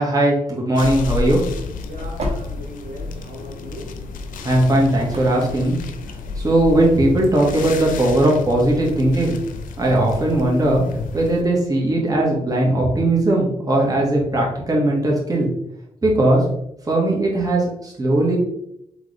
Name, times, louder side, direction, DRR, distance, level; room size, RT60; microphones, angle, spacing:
voice 1, 0.0-1.4 4.4-5.8 6.4-9.4 9.8-10.8 11.1-15.5 16.0-16.4 16.9-18.4, right 1 dB, 25° right, -3 dB, 1.7 m, -18 dB
sound 1, 0.8-11.4, left 4 dB, 85° left, 0.5 m, -31 dB
sound 2, 1.5-6.6, equal, 50° right, 1.2 m, -35 dB
voice 2, 1.8-4.2, right 1 dB, 85° right, 0 dB, 1.0 m, -38 dB
3.9 x 3.6 x 3.4 m, 0.77 s
cardioid pair, 65°, 14 cm